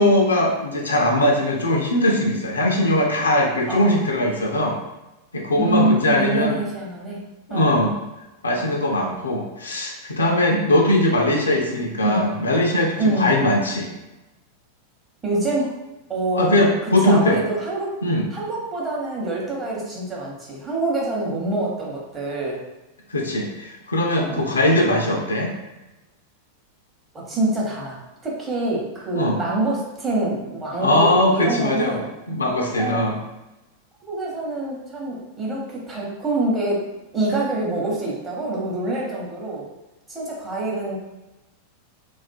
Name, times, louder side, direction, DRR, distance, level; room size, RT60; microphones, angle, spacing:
voice 1, 0.0-4.8 5.3-6.6 7.5-7.9 8.4-13.9 16.3-17.4 18.0-18.3 23.1-25.5 29.1-29.4 30.8-32.0 32.3-33.2, left 1 dB, 75° left, 0 dB, 0.4 m, -20 dB
voice 2, 3.7-4.0 5.6-7.2 7.5-7.8 12.0-12.2 13.0-13.5 15.2-15.7 16.1-16.7 17.0-18.0 18.3-22.6 24.2-24.5 27.1-32.1 32.8-33.1 34.1-39.7 40.1-41.0, right 2 dB, 20° right, -5 dB, 0.8 m, -25 dB
2.4 x 2.3 x 2.2 m, 1.0 s
figure-of-eight pair, 90°, 0 cm